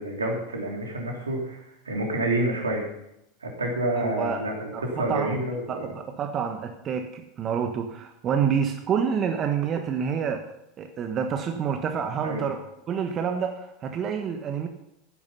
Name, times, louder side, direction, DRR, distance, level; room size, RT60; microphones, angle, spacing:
voice 1, 0.0-2.9 3.4-5.9 12.2-12.5, right 1 dB, 85° right, 0 dB, 3.3 m, -28 dB
voice 2, 4.0-4.5 4.7-5.4 5.7-10.5 10.8-12.6 12.9-14.7, right 7 dB, 35° right, 5 dB, 1.5 m, -28 dB
15.0 x 9.6 x 5.7 m, 0.84 s
figure-of-eight pair, 80°, 0 cm